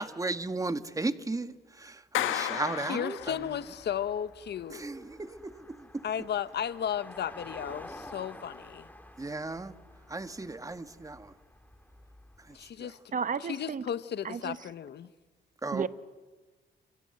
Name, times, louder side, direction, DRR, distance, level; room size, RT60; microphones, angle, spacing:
voice 1, 0.0-3.2 4.7-6.0 9.2-9.7 10.1-11.3 15.6-15.8, right 2 dB, 15° right, 1.5 m, -35 dB
Clapping, 2.1-3.8, left 12 dB, 85° left, 1.6 m, -33 dB
voice 2, 2.8-4.8 6.0-8.9 12.5-13.0 13.4-15.1, left 9 dB, 55° left, 1.1 m, -34 dB
sound 1, 3.2-12.7, left 1 dB, 10° left, 2.8 m, -50 dB
voice 3, 13.1-13.8 14.2-14.6 15.7-15.9, right 6 dB, 40° right, 1.2 m, -32 dB
29.0 x 26.0 x 7.9 m
cardioid pair, 90°, 20 cm